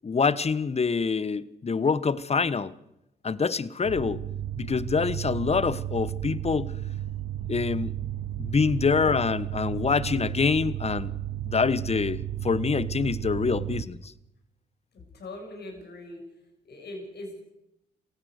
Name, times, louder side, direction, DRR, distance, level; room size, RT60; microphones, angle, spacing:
voice 1, 0.0-2.7 3.2-4.2 4.6-6.7 7.5-7.9 8.4-11.1 11.5-14.1, left 5 dB, 30° left, 19 dB, 1.2 m, -26 dB
sound 1, 3.8-13.8, right 12 dB, 55° right, 1.8 m, -33 dB
voice 2, 14.9-16.2 16.6-17.4, left 1 dB, 55° left, 2 dB, 7.2 m, -41 dB
27.5 x 16.5 x 6.7 m, 0.89 s
hypercardioid pair, 45°, 21 cm